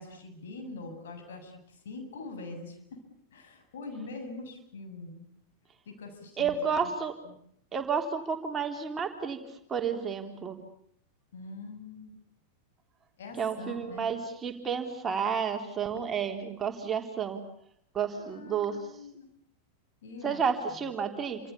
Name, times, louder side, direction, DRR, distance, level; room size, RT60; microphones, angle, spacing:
voice 1, 0.0-3.0 3.3-5.3 5.9-6.6 6.8-6.9 7.2-7.4 11.3-12.2 13.2-14.1 18.1-19.3 20.0-20.4 20.7-20.8, left 3 dB, 60° left, 5 dB, 7.8 m, -43 dB
voice 2, 6.4-7.1 7.7-9.4 9.7-10.6 13.4-17.4 17.9-18.7 20.2-21.4, right 6 dB, 20° right, 4 dB, 3.7 m, -31 dB
29.5 x 27.0 x 7.2 m, 0.67 s
figure-of-eight pair, 90°, 0 cm